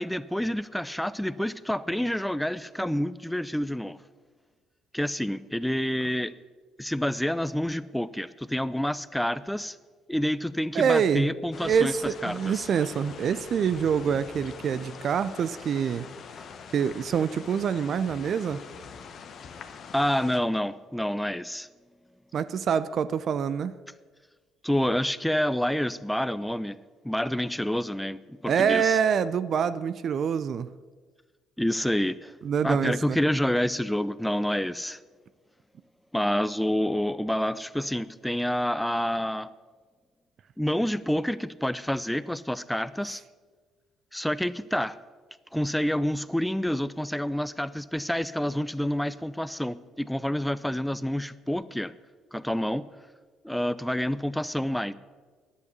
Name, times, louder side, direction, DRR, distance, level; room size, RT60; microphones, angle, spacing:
voice 1, 0.0-4.0 4.9-6.3 6.8-9.8 10.1-11.9 12.2-12.7 19.9-21.7 24.6-26.8 27.0-29.0 31.6-32.3 32.6-35.0 36.1-39.5 40.6-43.2 44.1-45.0 45.5-51.9 52.3-52.9 53.4-54.9, equal, 5° left, 17 dB, 0.5 m, -28 dB
voice 2, 10.7-11.3 11.6-16.1 16.7-18.6 22.3-23.7 28.4-30.7 32.4-33.2, right 7 dB, 50° right, 15 dB, 0.5 m, -26 dB
sound 1, 11.5-20.4, left 6 dB, 50° left, 1.1 m, -44 dB
10.5 x 8.3 x 8.2 m, 1.4 s
hypercardioid pair, 50°, 0 cm